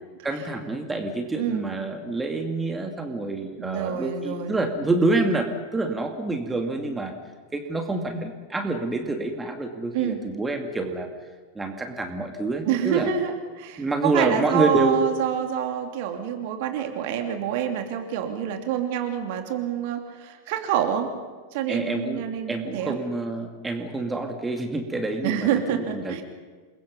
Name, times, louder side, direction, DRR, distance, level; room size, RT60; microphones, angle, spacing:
voice 1, 0.2-7.1 7.5-11.1 11.5-13.1 13.8-15.0 21.7-26.2, right 2 dB, 10° right, 4 dB, 2.4 m, -27 dB
voice 2, 1.3-1.7 3.6-4.5 9.9-10.2 12.7-21.1 21.5-23.0 25.2-26.2, right 9 dB, 50° right, 5 dB, 2.9 m, -27 dB
28.5 x 22.5 x 5.4 m, 1.5 s
figure-of-eight pair, 90°, 0 cm